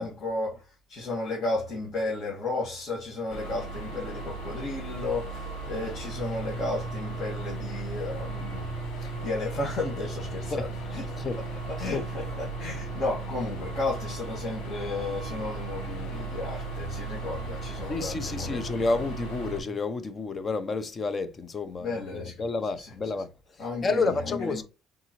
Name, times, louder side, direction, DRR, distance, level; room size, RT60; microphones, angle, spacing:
voice 1, 0.0-11.2 11.7-19.0 21.8-22.4 22.8-22.9 23.6-24.6, left 2 dB, 45° left, 1.7 m, -34 dB
sound 1, 3.3-19.6, right 3 dB, 85° left, 1.7 m, -38 dB
sound 2, 6.2-19.8, right 3 dB, 45° right, 0.7 m, -40 dB
voice 2, 17.9-23.3 23.8-24.6, left 3 dB, 30° left, 0.6 m, -30 dB
3.9 x 3.7 x 2.9 m
cardioid pair, 120°, 0 cm